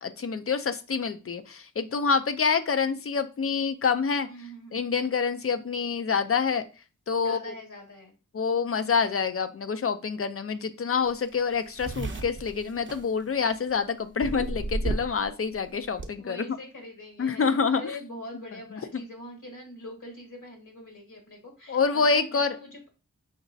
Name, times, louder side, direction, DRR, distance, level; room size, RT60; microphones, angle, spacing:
voice 1, 0.0-4.3 4.7-6.7 7.1-7.5 8.3-16.4 17.2-17.8 18.9-19.0 21.7-22.6, left 5 dB, 45° left, 10 dB, 0.4 m, -27 dB
voice 2, 4.2-4.8 7.2-8.1 16.2-22.9, left 1 dB, 70° left, 1 dB, 1.5 m, -43 dB
sound 1, 11.1-11.2 11.3-13.7 14.2-15.3 15.5-16.1, right 2 dB, 40° right, 0.6 m, -32 dB
5.2 x 2.9 x 2.6 m, 0.33 s
wide cardioid pair, 60°, 31 cm